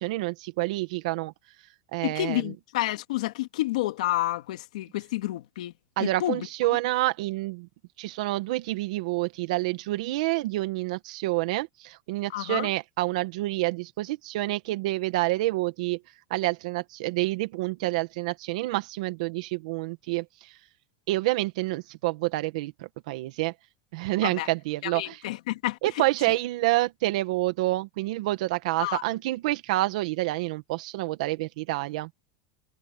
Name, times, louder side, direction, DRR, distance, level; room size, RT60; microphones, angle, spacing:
voice 1, 0.0-1.3 1.9-2.4 6.0-7.7 8.0-16.0 16.3-20.6 21.1-23.5 23.9-25.2 25.8-32.1, right 18 dB, 80° right, 1.6 m, -28 dB
voice 2, 2.0-5.7 6.0-6.5 12.3-12.7 24.2-24.5 24.8-26.0 28.8-29.0, left 16 dB, 85° left, 2.5 m, -29 dB
supercardioid pair, 130°, 4 cm